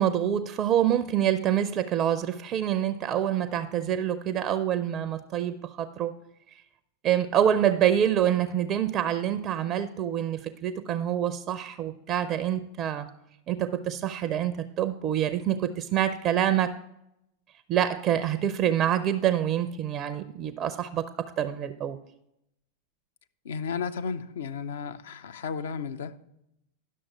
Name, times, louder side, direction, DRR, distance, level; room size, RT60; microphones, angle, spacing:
voice 1, 0.0-6.1 7.0-13.1 13.5-16.7 17.7-22.0, right 10 dB, 30° right, 0.4 m, -26 dB
voice 2, 23.4-26.3, left 6 dB, 60° left, 0.5 m, -34 dB
11.0 x 6.4 x 4.5 m
figure-of-eight pair, 90°, 0 cm